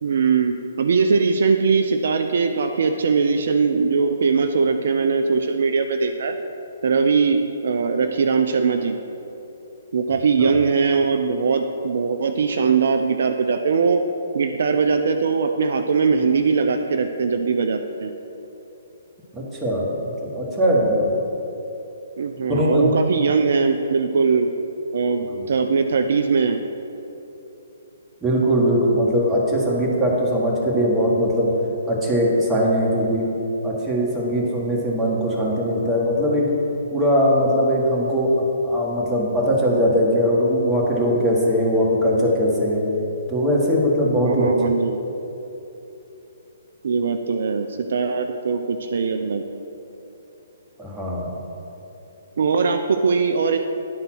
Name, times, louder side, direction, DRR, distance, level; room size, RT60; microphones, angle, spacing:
voice 1, 0.0-6.4 6.8-9.0 9.9-14.0 14.3-18.1 22.2-24.5 24.9-26.6 44.3-45.0 46.8-49.4 52.4-53.6, right 5 dB, 60° right, 6 dB, 0.4 m, -21 dB
voice 2, 19.3-21.1 22.6-22.9 25.2-25.4 28.2-31.5 31.9-33.3 33.6-36.5 36.9-42.8 43.3-44.5 50.8-51.3, equal, 10° right, -4 dB, 1.6 m, -20 dB
9.8 x 4.0 x 6.1 m, 3.0 s
figure-of-eight pair, 130°, 0 cm